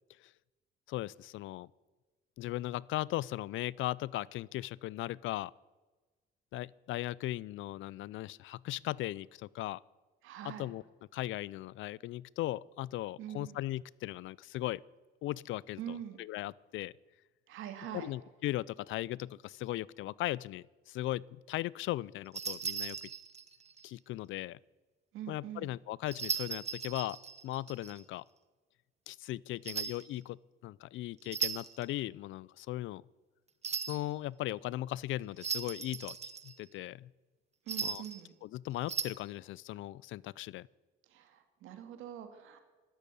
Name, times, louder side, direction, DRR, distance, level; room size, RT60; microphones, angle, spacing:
voice 1, 0.9-1.7 2.4-5.5 6.5-9.8 10.4-10.8 11.1-14.8 15.2-16.9 17.9-23.0 23.8-24.6 25.3-27.2 27.4-28.2 29.1-33.0 33.9-37.1 37.8-38.0 38.4-40.7, left 15 dB, 80° left, 24 dB, 0.4 m, -38 dB
voice 2, 10.2-10.7 13.2-13.6 15.8-16.2 17.5-18.1 25.1-25.8 37.7-38.3 41.1-42.6, right 10 dB, 90° right, 7 dB, 2.1 m, -44 dB
sound 1, 22.3-23.8 26.1-28.0 29.6-30.1 31.2-31.8 33.6-34.0 35.4-36.6 37.7-38.2 38.8-39.0, right 6 dB, 35° right, 1.2 m, -37 dB
12.5 x 12.0 x 8.5 m, 1.3 s
cardioid pair, 90°, 20 cm